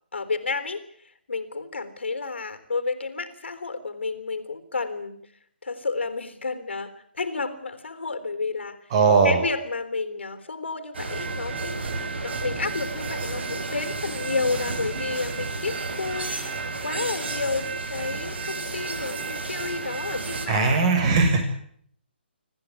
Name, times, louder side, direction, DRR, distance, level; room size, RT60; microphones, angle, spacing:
voice 1, 0.1-0.8 1.3-5.3 5.6-8.9 9.2-20.8, left 4 dB, 80° left, 11 dB, 3.6 m, -31 dB
voice 2, 8.9-9.4 20.5-21.4, right 4 dB, 35° right, 7 dB, 6.5 m, -19 dB
sound 1, 10.9-20.5, right 3 dB, 70° right, 5.5 m, -32 dB
25.5 x 14.5 x 10.0 m, 0.65 s
hypercardioid pair, 155°, 6 cm